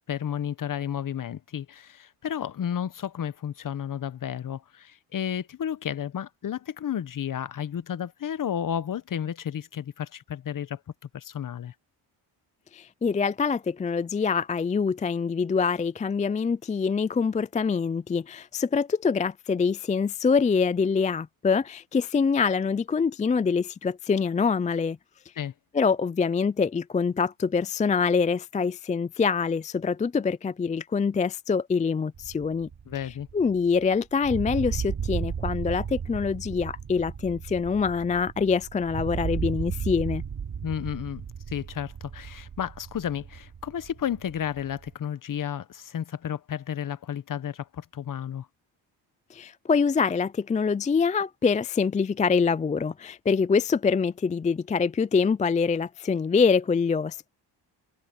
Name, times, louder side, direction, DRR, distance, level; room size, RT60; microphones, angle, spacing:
voice 1, 0.1-10.8 11.1-11.7 25.4-25.5 32.9-33.3 40.6-48.5, left 9 dB, 45° left, 1.0 m, -32 dB
voice 2, 12.7-25.0 25.7-32.7 33.3-40.2 49.3-57.3, left 5 dB, 15° left, 0.4 m, -25 dB
sound 1, 32.1-33.9 34.2-44.9, right 7 dB, 50° right, 3.1 m, -35 dB
cardioid pair, 90°, 45 cm